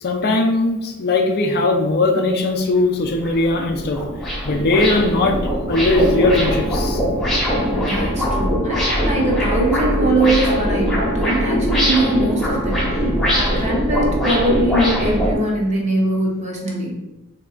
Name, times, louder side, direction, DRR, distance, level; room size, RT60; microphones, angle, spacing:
voice 1, 0.0-4.0 4.4-5.4 5.7-7.0, left 2 dB, 50° left, 3 dB, 0.4 m, -19 dB
sound 1, 2.5-2.6 3.0-15.4, equal, 5° left, 0.8 m, -21 dB
voice 2, 7.7-13.0 13.3-16.9, right 1 dB, 30° right, -2 dB, 0.7 m, -22 dB
3.4 x 2.9 x 2.4 m, 0.97 s
head